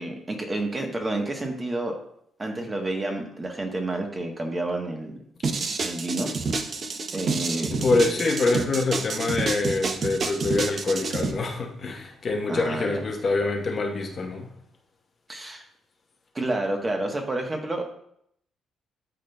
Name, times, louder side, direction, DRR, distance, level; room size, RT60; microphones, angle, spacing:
voice 1, 0.0-2.0 2.4-5.2 5.8-6.3 7.1-7.9 12.5-13.0 15.3-15.6 16.3-17.9, right 2 dB, 25° right, 1.1 m, -29 dB
sound 1, 5.4-11.3, right 4 dB, 45° right, 0.6 m, -28 dB
voice 2, 7.8-14.5, left 3 dB, 45° left, 1.0 m, -25 dB
11.5 x 3.8 x 2.2 m
cardioid pair, 90°, 0 cm